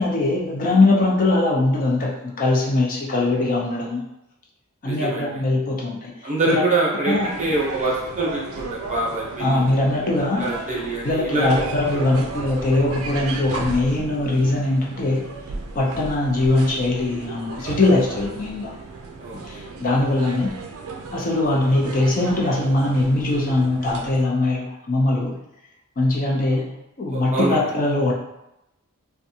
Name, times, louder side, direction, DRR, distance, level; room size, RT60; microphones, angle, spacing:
voice 1, 0.0-4.0 4.8-6.1 6.5-6.6 7.1-7.3 9.4-10.4 11.0-15.3 15.7-18.7 19.3-20.5 21.1-25.3 26.0-26.7 27.0-28.1, left 2 dB, 40° left, -3 dB, 0.5 m, -21 dB
voice 2, 4.8-5.4 6.2-9.6 10.4-11.7 11.9-12.0 19.2-19.6 27.1-27.6, right 2 dB, 35° right, -4 dB, 0.7 m, -25 dB
sound 1, 7.1-24.3, right 3 dB, 70° right, 0.4 m, -35 dB
2.5 x 2.2 x 2.6 m, 0.88 s
head